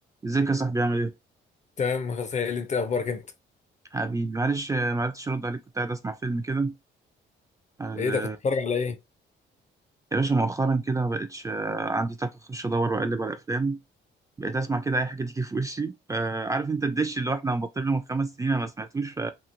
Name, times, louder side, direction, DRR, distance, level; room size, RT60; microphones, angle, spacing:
voice 1, 0.2-1.1 3.9-6.7 7.8-8.4 10.1-13.8 14.4-19.3, right 3 dB, 15° right, 0.3 m, -27 dB
voice 2, 1.8-3.2 8.0-9.0, left 5 dB, 35° left, 0.5 m, -27 dB
2.9 x 2.6 x 2.5 m
cardioid pair, 90°, 20 cm